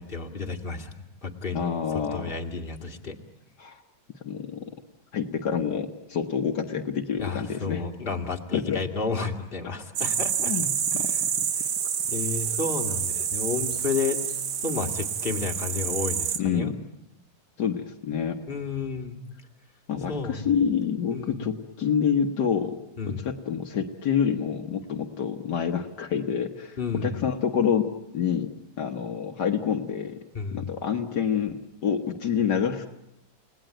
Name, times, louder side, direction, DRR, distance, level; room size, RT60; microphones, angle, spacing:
voice 1, 0.0-3.2 7.2-11.2 12.1-14.2 14.6-16.7 18.5-19.2 20.1-20.5 21.1-21.4 23.0-23.3 26.8-27.2 30.3-30.6, left 4 dB, 30° left, 3 dB, 2.3 m, -32 dB
voice 2, 1.5-2.3 3.6-3.8 4.2-4.7 5.1-7.8 8.5-8.8 10.4-11.5 16.4-16.8 17.6-18.4 19.9-22.8 23.1-27.9 28.1-28.5 28.8-30.2 30.5-32.9, left 7 dB, 70° left, 5 dB, 1.9 m, -27 dB
sound 1, 10.0-16.4, right 8 dB, 75° right, 1.8 m, -28 dB
30.0 x 18.5 x 9.0 m, 0.89 s
omnidirectional pair, 1.9 m